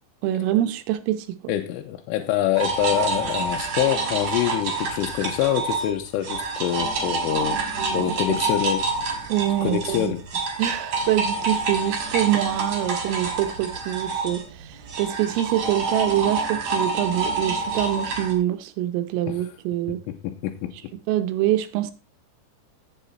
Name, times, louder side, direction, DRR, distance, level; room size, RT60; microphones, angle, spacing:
voice 1, 0.2-1.5 7.5-8.1 9.3-10.1 10.6-20.0 21.1-21.9, right 13 dB, 90° right, 3.7 m, -25 dB
voice 2, 1.5-7.6 7.9-8.9 9.6-10.2 19.3-19.5 20.1-20.9, left 12 dB, 85° left, 3.3 m, -25 dB
sound 1, 2.6-5.9 6.2-18.3, right 3 dB, 40° right, 3.7 m, -27 dB
15.0 x 7.5 x 4.3 m
omnidirectional pair, 5.7 m